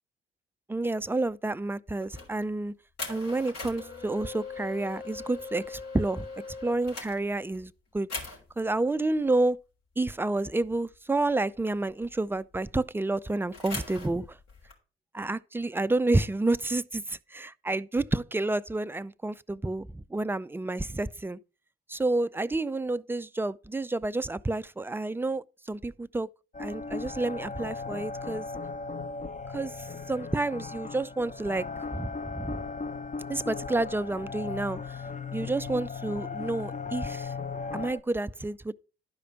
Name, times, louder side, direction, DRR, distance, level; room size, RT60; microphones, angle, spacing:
voice 1, 0.7-2.7 3.1-6.3 6.6-8.1 8.6-9.6 10.0-14.4 15.1-21.4 21.9-26.3 26.6-28.5 29.5-31.7 31.9-32.6 33.3-35.0 35.3-37.3 37.7-38.7, right 2 dB, 10° right, 0.4 m, -29 dB
sound 1, 2.0-2.4 3.0-7.7 8.1-8.6 10.6-10.9 11.3-11.4 11.7-12.9 13.5-14.7, left 3 dB, 60° left, 3.5 m, -40 dB
sound 2, 26.5-38.0, left 4 dB, 25° left, 0.9 m, -37 dB
12.0 x 5.0 x 5.8 m
figure-of-eight pair, 45°, 29 cm